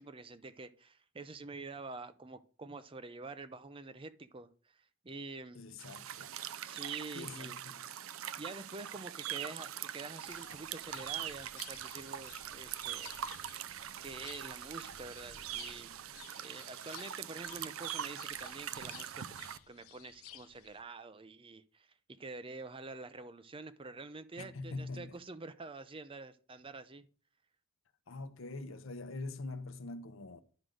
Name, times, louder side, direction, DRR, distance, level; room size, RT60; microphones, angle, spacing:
voice 1, 0.0-5.6 6.6-7.6 8.4-13.2 14.0-16.0 16.4-19.2 19.7-27.1, right 3 dB, 25° right, 0.5 m, -47 dB
voice 2, 5.5-6.3 7.1-7.8 24.4-25.2 28.1-30.4, left 3 dB, 65° left, 0.8 m, -44 dB
sound 1, 5.8-19.6, right 10 dB, 75° right, 0.5 m, -43 dB
sound 2, 10.2-20.8, left 11 dB, 90° left, 0.6 m, -55 dB
11.0 x 3.8 x 6.4 m
head